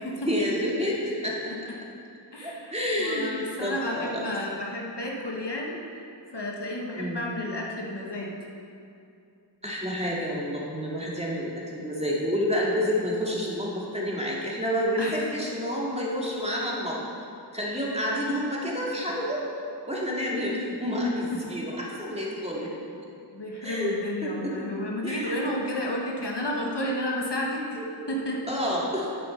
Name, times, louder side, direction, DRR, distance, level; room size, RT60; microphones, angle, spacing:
voice 1, 0.3-1.5 2.4-4.2 6.9-7.3 9.6-17.0 17.5-19.4 19.9-22.7 23.6-24.0 24.2-24.5 25.0-25.4 27.8-29.2, equal, 15° right, -4 dB, 2.3 m, -29 dB
voice 2, 2.3-6.1 6.3-8.3 15.0-15.3 16.6-16.7 21.3-21.6 22.6-22.8 23.3-27.8 28.1-28.4, left 1 dB, 60° left, -2 dB, 1.5 m, -32 dB
9.5 x 7.7 x 5.4 m, 2.5 s
wide cardioid pair, 45°, 46 cm